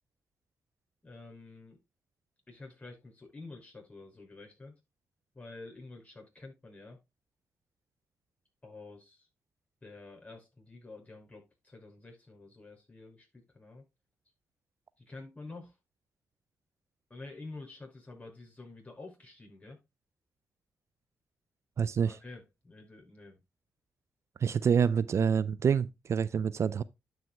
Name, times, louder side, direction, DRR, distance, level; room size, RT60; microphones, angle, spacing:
voice 1, 1.0-1.8 2.5-4.7 5.3-7.0 8.6-9.3 9.8-13.8 15.0-15.8 17.1-19.8 22.0-23.4, left 3 dB, 25° left, 6.1 m, -49 dB
voice 2, 21.8-22.2 24.4-26.8, right 7 dB, 50° right, 0.4 m, -27 dB
12.0 x 6.0 x 2.3 m
supercardioid pair, 60°, 6 cm